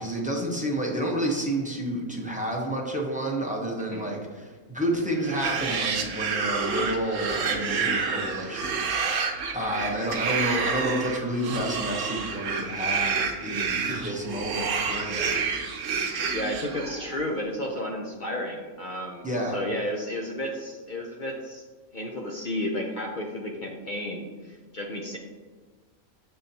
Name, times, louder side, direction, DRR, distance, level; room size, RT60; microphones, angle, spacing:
voice 1, 0.0-15.5 15.8-16.1 19.2-19.6, right 1 dB, 10° right, -2 dB, 0.4 m, -30 dB
sound 1, 5.2-17.2, right 5 dB, 65° right, 1.0 m, -29 dB
voice 2, 16.3-21.6 21.9-25.2, left 1 dB, 55° left, 0 dB, 0.5 m, -32 dB
6.9 x 5.5 x 2.7 m, 1.4 s
omnidirectional pair, 1.5 m